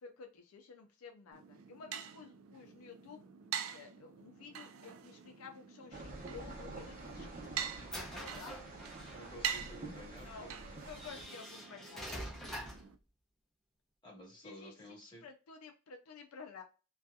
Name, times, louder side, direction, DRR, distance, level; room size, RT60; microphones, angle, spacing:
voice 1, 0.0-3.3 3.7-7.4 8.2-8.5 10.2-10.5 10.8-12.2 14.4-16.6, left 5 dB, 80° left, 4 dB, 0.4 m, -52 dB
sound 1, 1.3-13.0, right 8 dB, 75° right, 0.3 m, -45 dB
sound 2, 5.9-11.3, right 2 dB, 35° right, 0.8 m, -48 dB
sound 3, 6.9-9.3 10.2-10.3 10.9-12.9, equal, ahead, 0.5 m, -46 dB
voice 2, 7.8-8.2 8.6-8.7 9.1-10.5 14.0-15.2, equal, 20° left, -2 dB, 1.1 m, -52 dB
2.7 x 2.3 x 2.2 m, 0.34 s
head